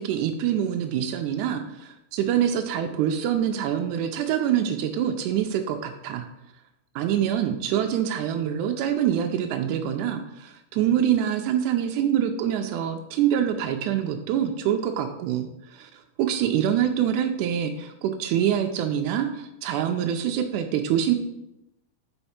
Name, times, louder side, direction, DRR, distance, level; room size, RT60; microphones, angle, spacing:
voice 1, 0.0-6.3 7.0-15.9 16.2-21.2, right 9 dB, 85° right, 5 dB, 1.8 m, -25 dB
5.7 x 4.4 x 4.2 m, 0.86 s
omnidirectional pair, 3.9 m